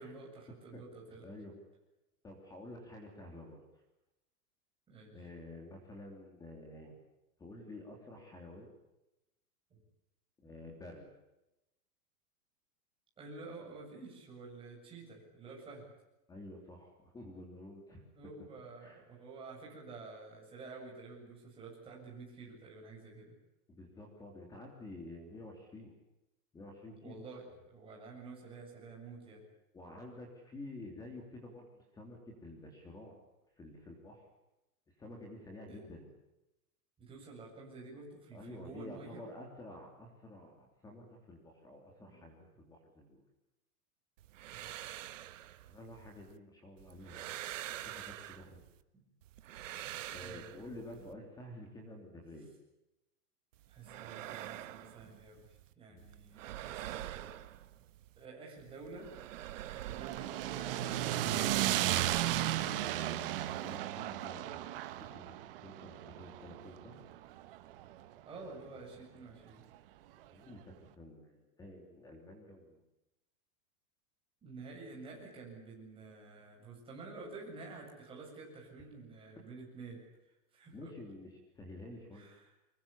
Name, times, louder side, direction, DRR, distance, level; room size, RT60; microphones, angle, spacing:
voice 1, 0.0-1.3 4.9-5.2 9.7-9.8 13.2-15.9 18.1-23.4 27.0-29.4 35.7-35.8 37.0-39.2 42.0-42.2 44.5-45.0 48.4-48.5 48.9-49.0 50.2-51.1 53.7-55.4 55.8-57.3 58.2-59.1 59.7-60.9 68.2-69.6 74.4-80.0 80.5-80.9 82.1-82.5, right 3 dB, 10° right, -3 dB, 7.6 m, -50 dB
voice 2, 1.2-1.6 2.2-3.6 5.1-6.9 7.4-8.7 10.4-11.1 16.3-18.0 18.8-19.0 23.7-25.9 26.5-27.2 29.7-33.2 33.6-34.3 35.0-36.1 38.3-43.2 45.7-47.3 47.7-48.7 50.1-52.5 55.9-56.1 59.6-59.8 63.6-64.7 65.0-65.3 65.6-67.0 70.3-72.8 80.7-82.3, left 1 dB, 10° left, 2 dB, 3.1 m, -50 dB
sound 1, 44.2-46.4 46.8-48.8 49.2-51.1 53.5-55.7 56.0-58.2 58.6-61.1 61.4-63.8, right 13 dB, 55° right, 1.5 m, -47 dB
sound 2, 59.8-68.1, right 13 dB, 35° right, 1.6 m, -35 dB
24.5 x 22.5 x 8.5 m, 0.92 s
supercardioid pair, 180°, 46 cm